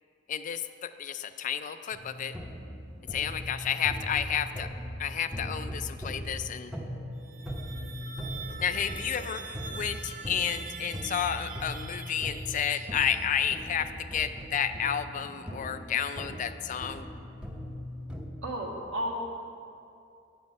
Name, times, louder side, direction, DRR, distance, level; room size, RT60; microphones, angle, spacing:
voice 1, 0.3-2.3 3.1-4.7 5.0-6.7 8.6-17.1, left 8 dB, 40° left, 11 dB, 0.3 m, -31 dB
sound 1, 1.9-18.3, equal, 5° right, 0.8 m, -40 dB
sound 2, 7.1-13.8, right 6 dB, 45° right, 0.6 m, -44 dB
voice 2, 18.4-19.1, right 1 dB, 75° right, -2 dB, 1.8 m, -34 dB
9.4 x 8.2 x 5.3 m, 2.6 s
head